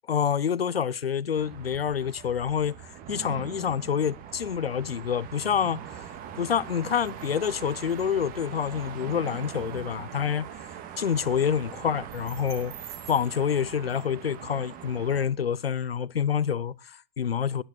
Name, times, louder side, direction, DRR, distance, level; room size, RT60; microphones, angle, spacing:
voice 1, 0.1-2.7 3.1-6.0 6.4-10.5 11.0-12.7 13.1-17.6, left 8 dB, 85° left, 0.8 m, -27 dB
sound 1, 1.4-15.3, right 9 dB, 30° right, 2.0 m, -42 dB
sound 2, 2.0-14.1, right 10 dB, 50° right, 2.0 m, -56 dB
16.5 x 11.0 x 4.3 m
figure-of-eight pair, 115°, 29 cm